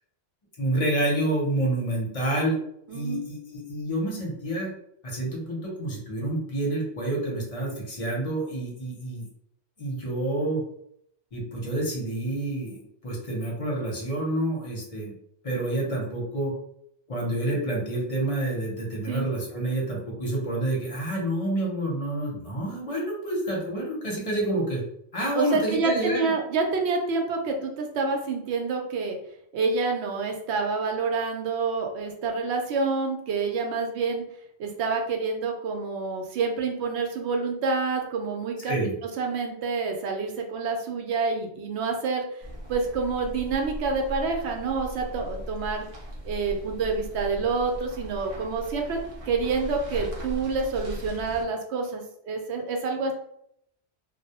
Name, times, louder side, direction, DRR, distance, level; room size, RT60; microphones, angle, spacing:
voice 1, 0.6-2.6 2.9-4.7 5.0-9.3 9.8-10.6 11.3-15.1 15.4-16.5 17.1-24.8 25.1-26.3 38.6-38.9, right 1 dB, 35° left, -2 dB, 0.7 m, -28 dB
voice 2, 2.9-3.2 19.1-19.3 25.3-29.2 29.5-34.2 34.6-38.9 39.2-42.2 42.7-45.9 46.2-49.0 49.3-53.1, right 4 dB, 70° right, 3 dB, 0.8 m, -28 dB
sound 1, 42.4-51.4, equal, 55° right, 0.4 m, -38 dB
2.2 x 2.0 x 2.8 m, 0.72 s
omnidirectional pair, 1.2 m